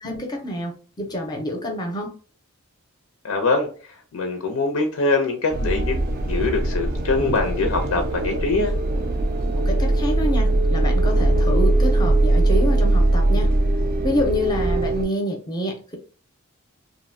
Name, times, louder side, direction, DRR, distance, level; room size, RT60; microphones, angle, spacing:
voice 1, 0.0-2.1 9.6-13.5 14.0-16.0, equal, 20° left, 2 dB, 0.5 m, -27 dB
voice 2, 3.2-6.0 6.2-8.8, left 3 dB, 90° left, 4 dB, 0.5 m, -23 dB
sound 1, 5.5-15.0, right 2 dB, 45° right, 0.3 m, -20 dB
2.6 x 2.0 x 2.5 m, 0.39 s
head